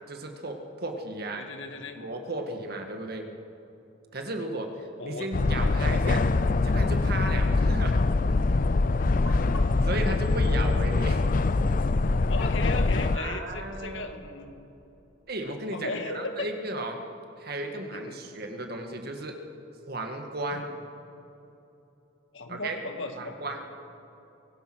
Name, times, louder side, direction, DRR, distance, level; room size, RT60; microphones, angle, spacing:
voice 1, 0.1-1.5 2.0-3.3 4.1-4.7 5.0-6.3 6.6-8.0 9.8-11.2 13.1-14.2 15.3-17.0 17.4-19.4 19.9-20.6 22.5-22.8 23.1-23.6, right 2 dB, 50° right, 4 dB, 1.9 m, -34 dB
voice 2, 1.4-2.0 5.0-5.3 7.3-7.6 12.3-14.6 15.7-16.5 17.9-18.2 20.4-20.6 22.3-23.3, left 3 dB, 75° left, 6 dB, 1.9 m, -36 dB
sound 1, 5.3-13.2, left 3 dB, 45° left, 0.5 m, -24 dB
23.0 x 18.0 x 6.2 m, 2.9 s
head